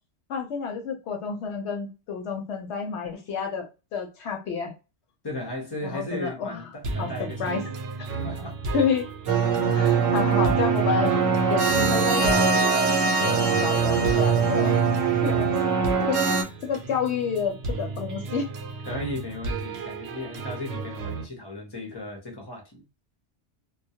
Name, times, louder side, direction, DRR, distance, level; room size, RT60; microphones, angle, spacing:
voice 1, 0.3-3.7 3.9-4.7 5.8-6.6 7.0-7.1 7.4-7.6 8.0-8.1 8.7-9.1 9.7-11.2 11.5-14.8 15.2-15.5 16.0-16.2 16.6-18.5, left 6 dB, 70° left, 0.8 m, -29 dB
voice 2, 5.2-7.8 8.2-8.5 10.4-10.6 18.9-22.8, left 1 dB, 30° left, 0.5 m, -36 dB
sound 1, 6.8-21.2, right 3 dB, 65° right, 0.7 m, -34 dB
sound 2, 9.3-16.4, right 5 dB, 85° right, 1.0 m, -22 dB
2.2 x 2.1 x 2.6 m
omnidirectional pair, 1.3 m